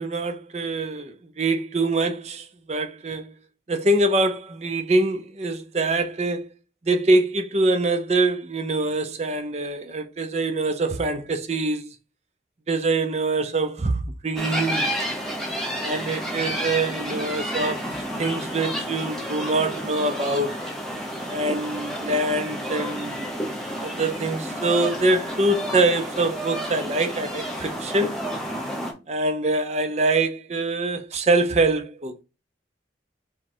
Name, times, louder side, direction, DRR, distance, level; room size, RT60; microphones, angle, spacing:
voice 1, 0.0-3.3 3.7-6.5 6.8-11.9 12.7-14.9 15.8-17.8 18.2-20.6 21.3-23.3 23.8-28.2 29.1-32.1, right 2 dB, 35° right, 0.5 m, -24 dB
sound 1, 14.4-28.9, equal, ahead, 0.8 m, -30 dB
3.6 x 3.1 x 4.4 m
head